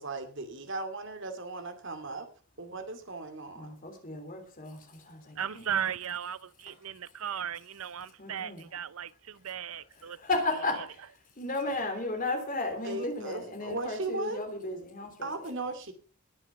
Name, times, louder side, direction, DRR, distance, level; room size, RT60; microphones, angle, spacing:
voice 1, 0.0-2.3 2.6-3.7 12.8-14.4 15.2-15.9, right 2 dB, 60° right, 2.6 m, -37 dB
voice 2, 3.5-5.6 6.7-6.8 8.2-8.7 10.0-11.0 11.4-15.3, left 2 dB, 40° left, 3.3 m, -34 dB
voice 3, 5.4-10.2, right 8 dB, 75° right, 0.7 m, -36 dB
20.5 x 7.2 x 5.9 m
head